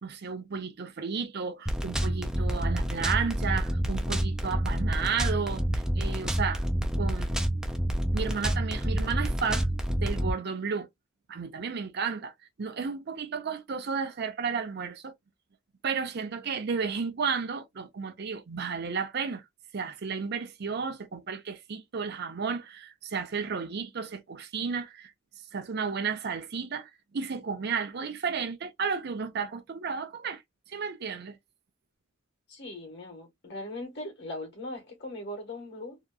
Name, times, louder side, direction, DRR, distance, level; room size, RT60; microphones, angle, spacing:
voice 1, 0.0-6.7 7.0-7.3 8.1-10.9 11.3-12.3 12.6-15.1 15.8-19.4 19.7-25.1 25.5-30.4 30.7-31.4, right 5 dB, 50° right, 0.5 m, -33 dB
sound 1, 1.7-10.3, equal, 5° right, 0.4 m, -28 dB
voice 2, 32.5-36.0, left 1 dB, 55° left, 1.3 m, -39 dB
2.9 x 2.3 x 2.3 m
head